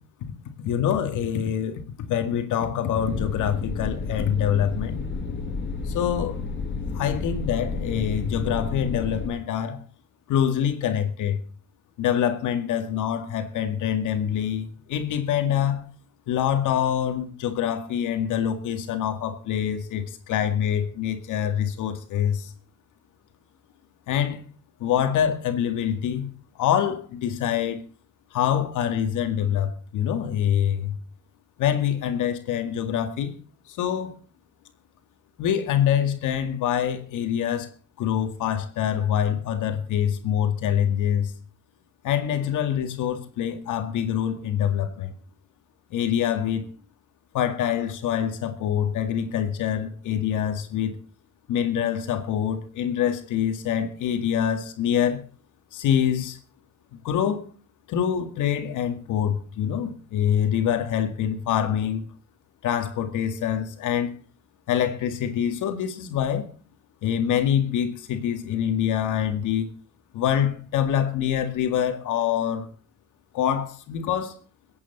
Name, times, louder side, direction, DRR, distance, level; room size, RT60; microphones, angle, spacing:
voice 1, 0.6-1.8 2.1-5.0 5.8-6.4 6.9-9.8 10.3-11.4 12.0-15.8 16.3-22.5 24.1-24.4 24.8-26.3 26.6-27.8 28.3-31.0 31.6-33.3 33.7-34.2 35.4-37.7 38.0-41.3 42.0-45.1 45.9-46.7 47.3-51.0 51.5-55.2 55.7-56.4 56.9-57.5 57.9-62.0 62.6-64.1 64.7-66.5 67.0-69.7 70.1-72.7 73.3-74.4, left 9 dB, 85° left, 2.1 m, -25 dB
sound 1, 3.0-9.3, left 4 dB, 40° left, 2.6 m, -31 dB
22.5 x 8.6 x 4.1 m
cardioid pair, 90°, 30 cm